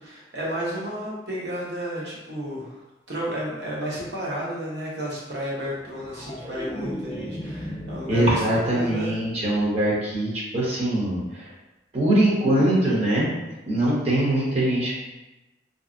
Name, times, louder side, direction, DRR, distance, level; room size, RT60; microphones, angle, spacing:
voice 1, 0.0-2.8 3.1-9.1, equal, 70° right, -6 dB, 1.0 m, -32 dB
sound 1, 5.7-8.9 9.2-9.6, equal, 15° left, 0.5 m, -36 dB
voice 2, 8.1-11.5 11.9-13.3 13.7-15.0, right 1 dB, 35° right, -5 dB, 0.7 m, -22 dB
2.9 x 2.6 x 2.5 m, 1.0 s
head